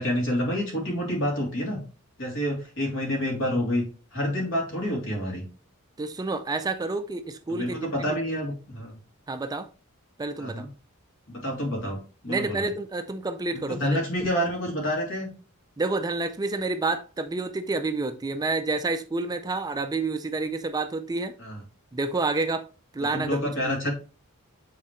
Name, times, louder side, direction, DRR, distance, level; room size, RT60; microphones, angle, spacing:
voice 1, 0.0-1.8 2.2-3.8 4.1-5.4 7.5-9.0 10.4-10.7 11.3-12.6 13.7-15.3 21.4-21.6 23.1-23.9, equal, 65° left, 3.0 m, -28 dB
voice 2, 6.0-8.1 9.3-9.7 10.2-10.6 12.3-14.0 15.8-21.3 21.9-22.7 22.9-23.9, right 3 dB, 20° right, 0.4 m, -29 dB
7.5 x 4.1 x 3.1 m
head